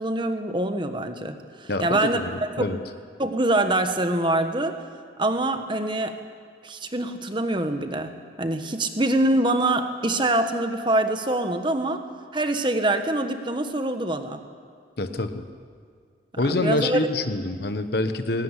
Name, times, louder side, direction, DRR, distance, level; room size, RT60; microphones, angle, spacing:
voice 1, 0.0-2.8 3.2-4.8 5.2-6.2 6.6-12.0 12.3-14.4 16.3-17.1, right 1 dB, 25° right, 7 dB, 1.2 m, -25 dB
voice 2, 1.7-2.8 15.0-15.5 16.4-18.4, left 2 dB, 55° left, 9 dB, 1.1 m, -26 dB
19.0 x 17.5 x 10.0 m, 2.1 s
head